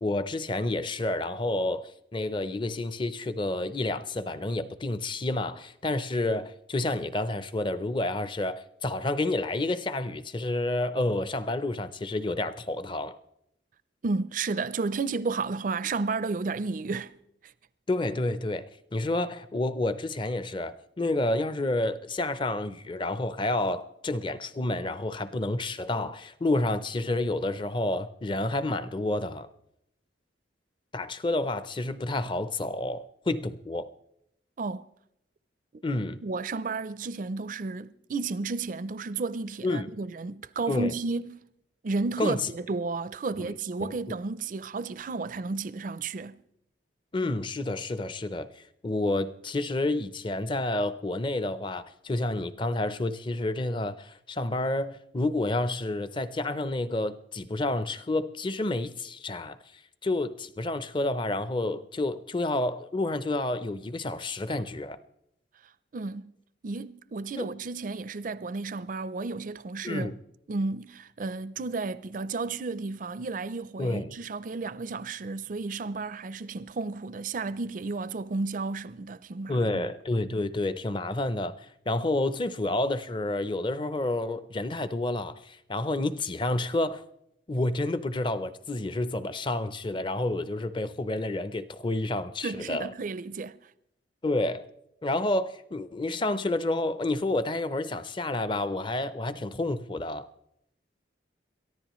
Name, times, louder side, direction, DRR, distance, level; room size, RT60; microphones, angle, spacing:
voice 1, 0.0-13.2 17.9-29.5 30.9-33.9 35.8-36.2 39.6-39.9 40.7-40.9 42.2-42.5 43.4-43.5 43.8-43.9 47.1-59.6 60.0-65.0 67.4-67.6 69.8-70.2 73.8-74.1 79.5-87.0 87.5-92.9 94.2-94.7 95.0-100.3, left 2 dB, 25° left, 0.5 m, -29 dB
voice 2, 14.0-17.1 17.4-17.5 34.6-34.8 36.2-41.4 41.8-46.4 65.9-66.3 66.6-70.1 70.5-79.9 92.4-93.6, right 3 dB, 45° right, 0.4 m, -32 dB
22.5 x 14.0 x 3.0 m
head